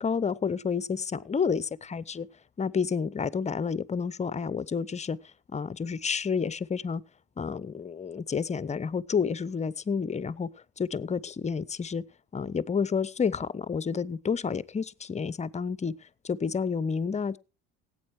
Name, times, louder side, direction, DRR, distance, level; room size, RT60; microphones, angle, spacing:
voice 1, 0.0-2.3 2.6-5.2 5.5-7.0 7.4-10.5 10.8-12.0 12.3-15.9 16.2-17.4, left 6 dB, 20° left, 0.6 m, -30 dB
16.5 x 8.6 x 4.7 m
hypercardioid pair, 75°, 32 cm